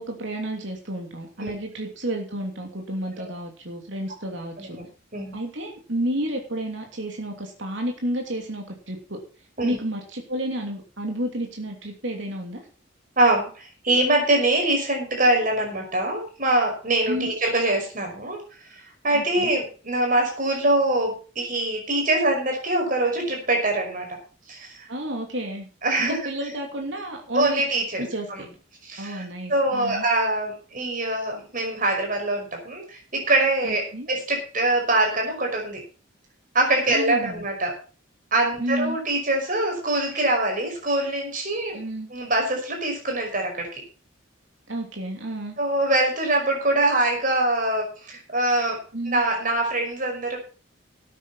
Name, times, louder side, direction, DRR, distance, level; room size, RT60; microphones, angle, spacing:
voice 1, 0.0-4.8 5.3-9.2 9.6-12.6 17.1-17.3 19.1-19.5 24.9-25.7 26.0-27.6 28.0-28.5 29.0-30.0 33.6-34.1 36.9-37.5 38.6-39.0 41.7-42.1 44.7-45.6 48.9-49.2, right 1 dB, 65° right, 2 dB, 3.0 m, -31 dB
voice 2, 13.2-18.4 18.7-24.2 24.5-24.9 25.8-26.2 27.3-28.4 28.8-35.8 36.5-37.7 38.3-41.8 42.1-43.8 45.6-50.4, right 2 dB, 40° right, 2 dB, 5.5 m, -24 dB
13.0 x 9.2 x 5.7 m, 0.36 s
head